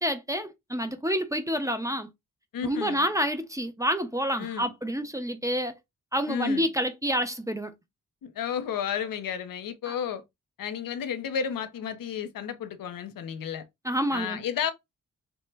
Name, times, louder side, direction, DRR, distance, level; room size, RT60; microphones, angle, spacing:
voice 1, 0.0-2.1 2.6-5.8 6.1-7.7 9.9-10.0 13.8-14.4, equal, 10° right, 0.5 m, -28 dB
voice 2, 2.5-3.1 4.4-4.7 6.3-6.7 8.2-10.2 10.6-13.6 14.1-14.7, left 8 dB, 80° left, 0.6 m, -32 dB
3.0 x 2.0 x 3.3 m
cardioid pair, 65°, 33 cm